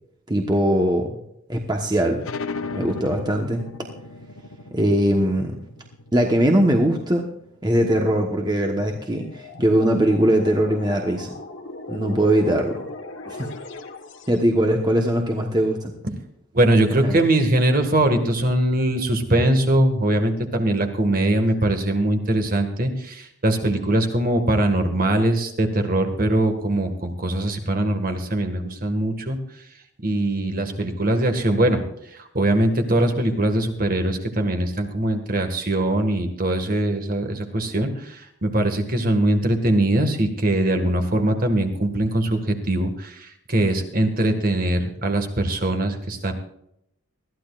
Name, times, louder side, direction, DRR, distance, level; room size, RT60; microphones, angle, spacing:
voice 1, 0.3-1.1 1.5-2.3 2.7-3.6 4.7-5.6 6.1-7.3 7.6-11.3 11.9-12.8 13.3-13.5 14.3-15.9 17.0-17.2, right 1 dB, 20° right, 2 dB, 1.2 m, -21 dB
sound 1, 2.2-7.5, left 3 dB, 85° left, 0.9 m, -36 dB
sound 2, 8.9-14.5, left 3 dB, 60° left, 1.3 m, -38 dB
voice 2, 16.5-29.4 30.0-31.8 32.1-46.3, right 1 dB, 45° right, 6 dB, 1.8 m, -21 dB
21.0 x 14.0 x 2.5 m, 0.75 s
head